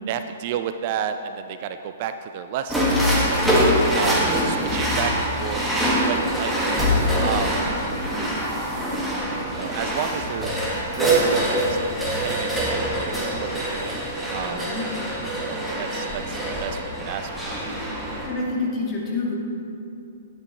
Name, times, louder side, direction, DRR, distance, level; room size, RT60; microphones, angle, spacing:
voice 1, 0.1-3.5 3.9-5.8 6.1-6.5 7.2-7.6 8.8-9.1 9.5-10.5 11.0-12.0 12.2-14.0 14.3-14.6 15.5-17.6, right 9 dB, 40° right, 9 dB, 0.3 m, -32 dB
sound 1, 2.7-18.3, equal, 5° right, 1.5 m, -24 dB
voice 2, 4.2-4.6 14.3-14.8 18.3-19.4, left 3 dB, 25° left, -4 dB, 2.0 m, -28 dB
11.0 x 8.9 x 3.0 m, 2.6 s
figure-of-eight pair, 115°, 0 cm